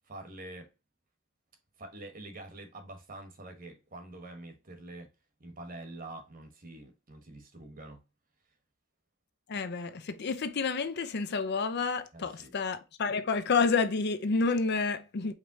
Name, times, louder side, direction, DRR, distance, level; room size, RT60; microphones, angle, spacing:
voice 1, 0.1-0.7 1.8-5.1 5.4-8.0 12.1-12.6, right 2 dB, 45° right, 1.2 m, -46 dB
voice 2, 9.5-15.3, left 4 dB, 55° left, 0.5 m, -29 dB
5.0 x 3.2 x 2.7 m
head